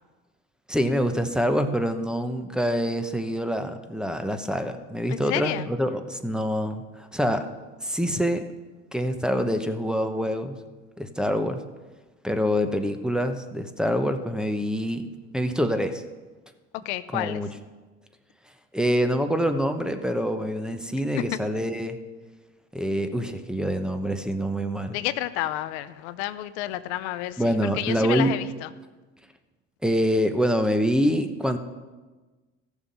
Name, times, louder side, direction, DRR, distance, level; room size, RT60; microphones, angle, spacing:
voice 1, 0.7-7.5 7.8-8.5 8.9-10.6 11.0-11.6 12.2-15.0 15.3-16.0 17.1-17.5 18.7-22.0 22.7-25.0 27.4-28.3 29.8-31.6, equal, ahead, 7 dB, 0.8 m, -25 dB
voice 2, 5.1-5.7 16.8-17.4 21.1-21.4 24.9-28.7, left 14 dB, 85° left, 13 dB, 0.6 m, -30 dB
14.5 x 7.0 x 5.5 m, 1.3 s
supercardioid pair, 105°, 33 cm